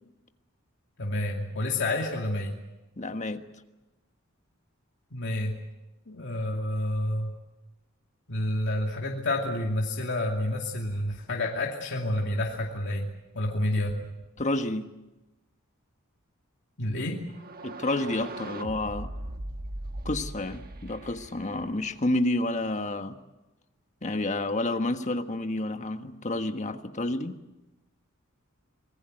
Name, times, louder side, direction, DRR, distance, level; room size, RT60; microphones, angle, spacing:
voice 1, 1.0-2.6 5.1-5.6 6.1-7.3 8.3-14.1 16.8-17.2, left 1 dB, 60° left, 0 dB, 2.5 m, -29 dB
voice 2, 3.0-3.4 14.4-14.9 17.6-19.1 20.0-23.2 24.0-27.4, left 2 dB, 35° left, 7 dB, 1.4 m, -29 dB
sound 1, 17.3-22.1, right 1 dB, 45° right, 1.3 m, -39 dB
26.5 x 19.5 x 7.9 m, 1.0 s
head